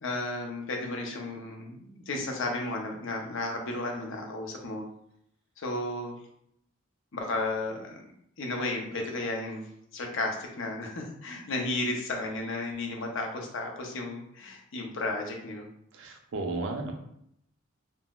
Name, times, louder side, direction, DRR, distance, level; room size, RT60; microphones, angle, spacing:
voice 1, 0.0-4.9 5.6-6.1 7.1-8.0 8.4-9.7 9.9-15.7, left 2 dB, 65° left, 1 dB, 0.6 m, -33 dB
voice 2, 15.9-16.9, right 2 dB, 65° right, 3 dB, 0.5 m, -33 dB
3.6 x 2.1 x 2.3 m, 0.73 s
head